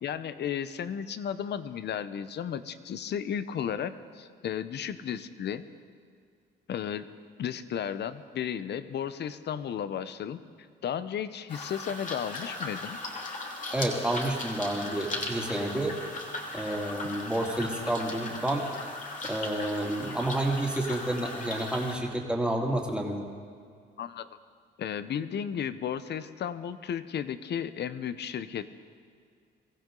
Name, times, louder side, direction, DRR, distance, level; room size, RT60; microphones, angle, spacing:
voice 1, 0.0-5.6 6.7-7.1 7.4-10.4 10.8-13.0 17.1-17.2 24.0-24.3 24.8-28.7, left 8 dB, 60° left, 13 dB, 0.8 m, -34 dB
sound 1, 11.5-21.9, left 2 dB, 40° left, 2.7 m, -38 dB
voice 2, 13.7-16.0 16.5-18.7 19.2-23.3, right 1 dB, 5° right, -1 dB, 2.6 m, -30 dB
23.5 x 15.0 x 3.9 m, 2.1 s
cardioid pair, 90°, 20 cm